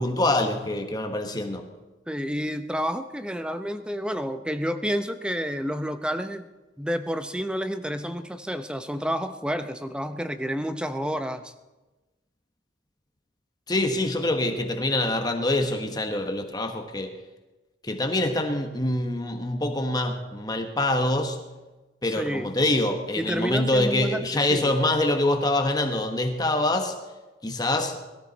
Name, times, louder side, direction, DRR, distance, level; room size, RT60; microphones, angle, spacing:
voice 1, 0.0-1.7 13.7-17.1 17.8-21.4 22.0-26.9 27.4-28.0, left 1 dB, 20° left, 5 dB, 1.2 m, -25 dB
voice 2, 2.1-6.5 6.8-11.5 22.0-22.5 23.2-24.8, equal, 5° right, 9 dB, 0.7 m, -30 dB
22.5 x 13.5 x 4.1 m, 1.1 s
head